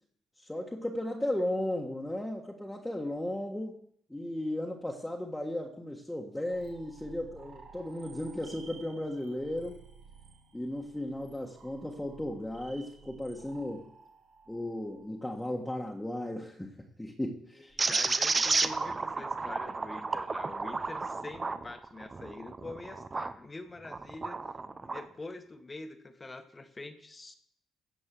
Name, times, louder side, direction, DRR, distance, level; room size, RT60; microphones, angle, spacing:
voice 1, 0.4-3.8 4.1-9.8 10.5-13.8 14.5-16.7 17.0-17.7, left 1 dB, 5° left, -1 dB, 1.5 m, -35 dB
sound 1, 6.5-16.1, right 5 dB, 65° right, 2.3 m, -54 dB
voice 2, 17.6-24.4 24.8-27.3, left 2 dB, 25° left, 8 dB, 1.4 m, -45 dB
sound 2, 17.8-23.3 23.8-25.1, right 3 dB, 30° right, 0.8 m, -32 dB
15.5 x 5.4 x 7.6 m, 0.67 s
supercardioid pair, 80°, 0 cm